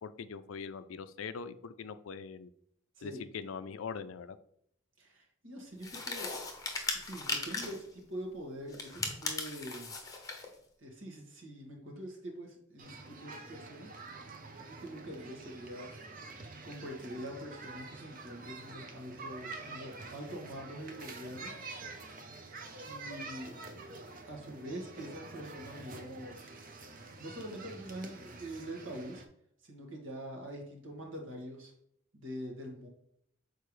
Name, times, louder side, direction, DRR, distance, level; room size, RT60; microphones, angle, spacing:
voice 1, 0.0-2.5 3.0-4.4, left 5 dB, 80° left, 13 dB, 0.4 m, -42 dB
voice 2, 5.0-6.3 6.9-9.9 10.8-15.9 16.6-21.5 22.8-23.6 24.3-26.5 27.2-29.2 29.6-31.7 32.1-32.9, equal, 70° right, 1 dB, 1.7 m, -44 dB
sound 1, 5.8-7.9 8.7-10.5, left 3 dB, 15° left, 0.8 m, -38 dB
sound 2, 12.8-29.2, right 3 dB, 40° right, 0.7 m, -47 dB
6.8 x 4.5 x 3.2 m, 0.71 s
head